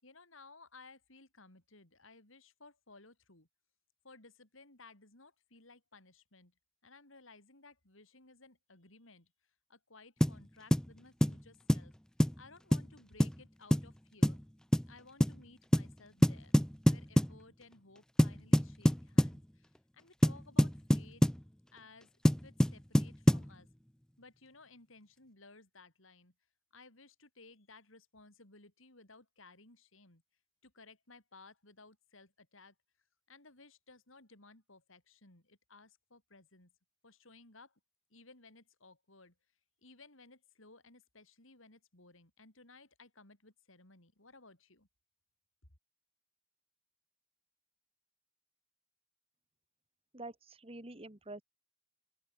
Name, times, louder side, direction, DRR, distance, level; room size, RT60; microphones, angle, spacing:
voice 1, 0.0-3.5 4.0-6.5 6.8-9.3 9.7-11.9 12.4-14.4 14.9-16.5 16.9-21.3 21.7-23.7 24.2-26.3 26.7-30.2 30.6-32.7 33.3-36.7 37.0-37.7 38.1-39.3 39.8-44.9, left 3 dB, 75° left, 5.1 m, -59 dB
sound 1, 10.2-10.4 10.7-10.9 11.2-11.4 11.7-11.9 12.2-12.4 12.7-12.9 13.2-13.4 13.7-13.9 14.2-14.4 14.7-14.9 15.2-15.4 15.7-15.9 16.2-17.4 18.2-19.4 20.2-21.4 22.2-23.5, equal, 5° left, 0.4 m, -26 dB
voice 2, 50.1-51.4, right 2 dB, 30° right, 1.6 m, -47 dB
open air
head